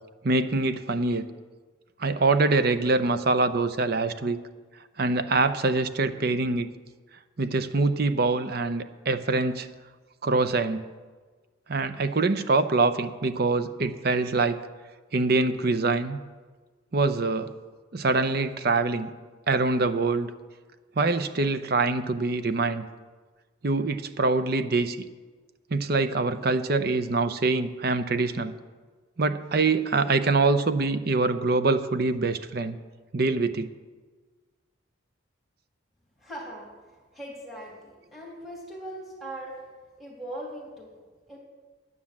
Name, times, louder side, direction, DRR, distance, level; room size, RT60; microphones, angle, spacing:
voice 1, 0.2-1.2 2.0-4.4 5.0-6.7 7.4-9.7 10.2-10.9 11.7-14.6 15.1-16.2 16.9-17.5 17.9-19.1 19.5-20.3 21.0-22.8 23.6-25.0 25.7-28.5 29.2-32.8 33.1-33.7, right 3 dB, 50° right, 11 dB, 0.6 m, -24 dB
voice 2, 36.2-36.7 37.1-39.6 40.0-40.9 41.3-41.4, right 1 dB, ahead, -4 dB, 2.9 m, -40 dB
9.7 x 9.6 x 7.3 m, 1.4 s
head